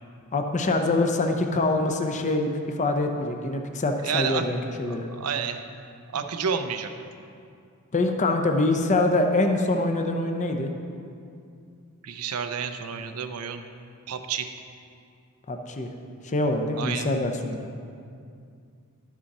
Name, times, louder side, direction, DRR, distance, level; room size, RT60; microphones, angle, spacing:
voice 1, 0.3-5.1 7.9-10.7 15.5-15.9 16.2-17.7, left 2 dB, 35° left, 4 dB, 0.6 m, -25 dB
voice 2, 4.0-4.5 4.9-6.9 12.0-13.6 14.1-14.5 16.8-17.1, right 6 dB, 80° right, 8 dB, 0.6 m, -30 dB
12.0 x 6.2 x 4.1 m, 2.4 s
head